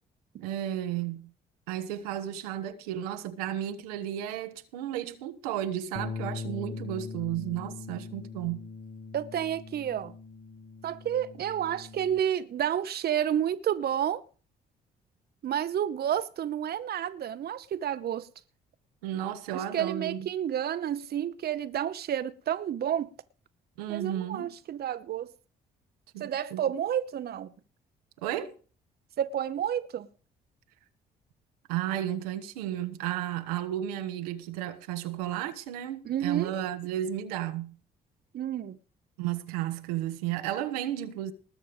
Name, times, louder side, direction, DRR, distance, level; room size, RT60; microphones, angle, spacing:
voice 1, 0.4-1.3 1.7-8.6 19.0-20.3 23.8-24.5 26.1-26.6 28.2-28.5 31.7-37.7 39.2-41.3, right 12 dB, 85° right, 1.2 m, -33 dB
Bass guitar, 6.0-12.2, left 4 dB, 35° left, 1.3 m, -41 dB
voice 2, 9.1-10.1 10.8-14.2 15.4-18.3 19.5-23.1 23.9-25.3 26.2-27.5 29.2-30.1 36.0-36.5 38.3-38.8, right 10 dB, 55° right, 1.0 m, -30 dB
20.0 x 6.7 x 5.0 m
hypercardioid pair, 55°, 20 cm